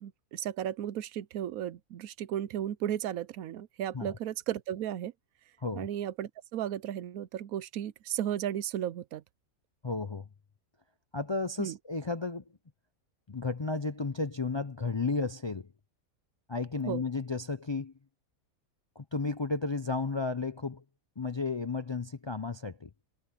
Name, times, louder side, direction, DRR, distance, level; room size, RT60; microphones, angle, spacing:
voice 1, 0.0-5.1 5.7-9.2 11.6-11.8 16.9-17.0, right 11 dB, 80° right, 1.1 m, -34 dB
voice 2, 9.8-10.3 11.1-12.4 13.3-15.7 16.5-17.9 19.0-20.8 21.2-22.9, left 3 dB, 45° left, 0.3 m, -33 dB
omnidirectional pair, 1.5 m